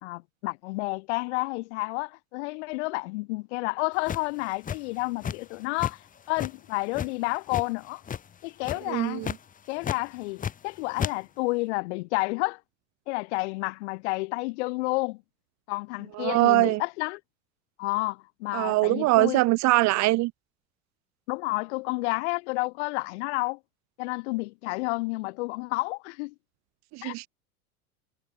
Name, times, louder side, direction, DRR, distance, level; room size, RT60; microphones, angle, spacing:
voice 1, 0.0-6.0 6.3-8.0 8.4-9.2 9.7-12.6 13.1-15.2 15.7-17.2 17.8-19.4 21.3-23.6 24.0-26.3 27.0-27.1, left 25 dB, 50° left, 2.1 m, -30 dB
sound 1, 4.0-5.5 5.8-6.0 6.4-7.7 8.0-8.3 8.6-8.9 9.2-9.4 9.8-10.7 11.0-11.1, left 8 dB, 20° left, 1.3 m, -32 dB
voice 2, 8.9-9.3 16.1-16.8 18.5-20.3 26.9-27.3, right 21 dB, 40° right, 1.6 m, -22 dB
figure-of-eight pair, 80°, 43 cm